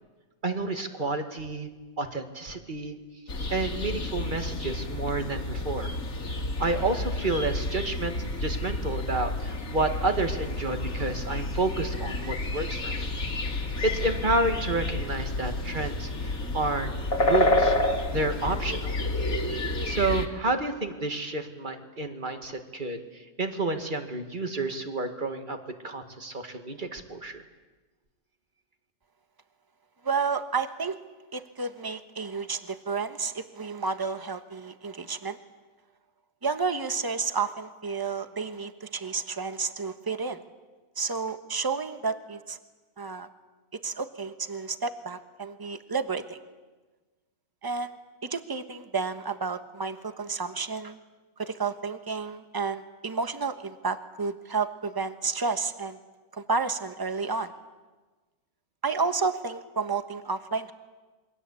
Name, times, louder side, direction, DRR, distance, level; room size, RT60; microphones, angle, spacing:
voice 1, 0.4-1.7 2.0-3.0 3.5-5.9 6.6-13.1 13.5-16.9 17.2-18.9 19.8-25.6 25.8-27.5, right 2 dB, 35° right, 7 dB, 2.1 m, -30 dB
sound 1, 3.3-20.3, left 2 dB, 65° left, 2.8 m, -30 dB
voice 2, 30.0-31.0 31.3-35.4 36.4-40.4 41.0-42.6 43.0-43.3 43.8-46.4 47.6-48.0 48.2-51.0 51.4-56.0 56.3-57.5 58.8-60.7, right 4 dB, 15° right, 10 dB, 1.1 m, -31 dB
28.0 x 23.0 x 8.4 m, 1.3 s
omnidirectional pair, 1.6 m